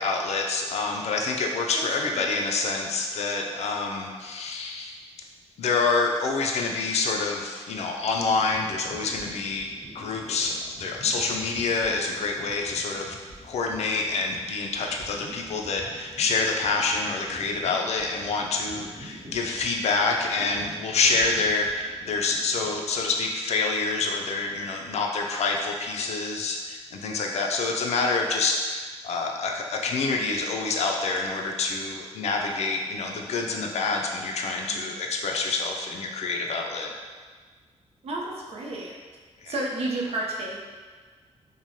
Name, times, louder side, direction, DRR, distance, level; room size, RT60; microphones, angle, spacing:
voice 1, 0.0-5.0 5.6-9.7 9.9-13.2 13.4-36.9 39.4-39.5, left 3 dB, 65° left, 1 dB, 0.4 m, -27 dB
voice 2, 1.7-2.3 33.5-34.0 34.4-35.0 38.0-38.9 39.5-40.6, right 2 dB, 60° right, -2 dB, 0.5 m, -33 dB
sound 1, 8.0-23.2, equal, 25° right, 0.9 m, -47 dB
3.0 x 2.1 x 2.6 m, 1.5 s
cardioid pair, 110°, 12 cm